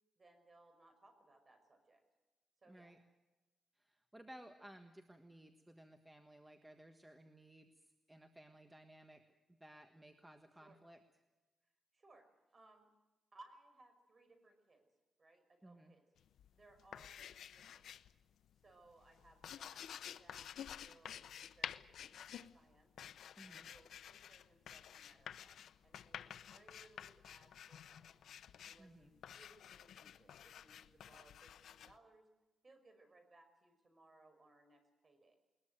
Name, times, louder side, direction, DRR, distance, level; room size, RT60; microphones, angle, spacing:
voice 1, 0.2-2.0 2.6-3.0 10.6-10.8 11.9-12.3 12.5-12.9 13.3-14.9 15.2-16.0 16.5-17.9 18.6-22.9 23.4-28.1 28.6-32.3 32.6-35.4, right 2 dB, 35° right, 7 dB, 5.6 m, -66 dB
voice 2, 2.7-3.0 3.7-9.2 9.5-11.0 15.6-15.9 23.4-23.7 28.8-29.1, right 1 dB, 10° right, 6 dB, 1.5 m, -59 dB
sound 1, 16.2-18.2 18.5-31.9, left 9 dB, 85° left, 0.7 m, -51 dB
21.0 x 21.0 x 7.9 m, 1.1 s
cardioid pair, 105°, 0 cm